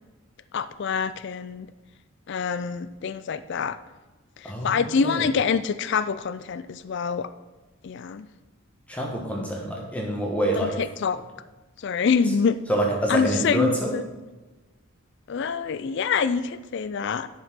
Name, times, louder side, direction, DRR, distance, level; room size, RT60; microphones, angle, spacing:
voice 1, 0.5-1.7 2.3-3.8 4.4-7.3 7.8-8.3 10.6-11.2 11.8-12.6 13.1-14.0 15.3-17.3, left 6 dB, 55° left, 13 dB, 0.4 m, -26 dB
voice 2, 4.4-5.2 8.9-10.8 12.7-14.0, right 1 dB, 5° left, -1 dB, 1.1 m, -26 dB
10.5 x 5.4 x 5.7 m, 1.2 s
head